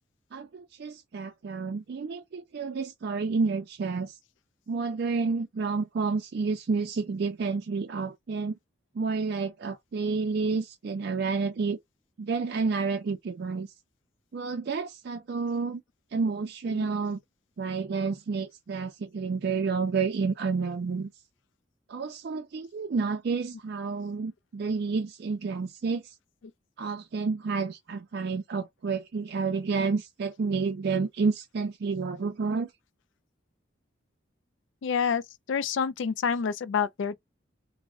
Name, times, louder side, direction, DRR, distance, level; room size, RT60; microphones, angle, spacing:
voice 1, 0.3-4.2 4.7-8.6 9.0-11.8 12.2-13.7 14.3-15.8 16.1-17.2 17.6-21.1 21.9-26.1 26.8-32.7, right 4 dB, 55° right, 0.4 m, -30 dB
voice 2, 34.8-35.2 35.5-37.1, left 6 dB, 75° left, 0.4 m, -27 dB
2.4 x 2.0 x 3.5 m
head